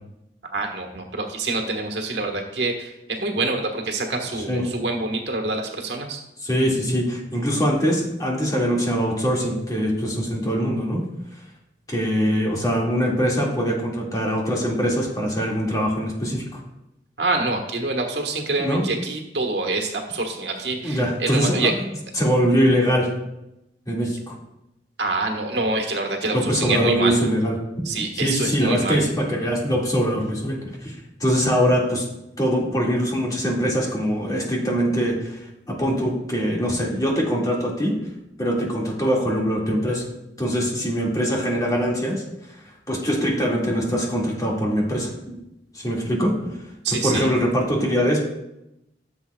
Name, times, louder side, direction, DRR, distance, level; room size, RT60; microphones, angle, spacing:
voice 1, 0.5-2.9 3.2-6.2 17.2-21.7 25.0-27.2 27.8-29.0 46.8-47.3, right 3 dB, 75° right, 2 dB, 1.5 m, -26 dB
voice 2, 6.4-11.0 11.9-16.6 18.6-18.9 20.8-21.8 22.2-23.1 23.9-24.4 26.3-27.6 28.1-30.9 31.2-32.1 32.4-38.0 38.4-40.1 40.4-42.2 42.9-45.4 45.7-46.5 46.9-48.2, equal, 20° left, -2 dB, 2.1 m, -23 dB
14.5 x 7.3 x 2.3 m, 0.87 s
head